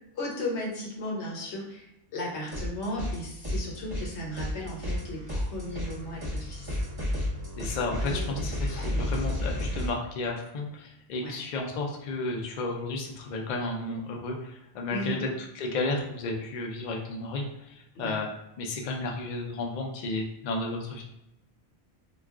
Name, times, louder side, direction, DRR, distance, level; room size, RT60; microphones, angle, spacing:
voice 1, 0.1-1.8 2.1-6.8 8.0-8.3 8.8-9.1 11.2-11.4 14.9-15.2 18.0-18.2, left 1 dB, 80° left, -2 dB, 1.1 m, -35 dB
sound 1, 2.5-3.2 3.4-9.9, left 1 dB, 20° right, 0.8 m, -32 dB
voice 2, 7.6-17.4 17.7-18.3 18.6-21.0, left 2 dB, 55° left, 1 dB, 0.5 m, -33 dB
2.3 x 2.3 x 3.5 m, 0.86 s
omnidirectional pair, 1.1 m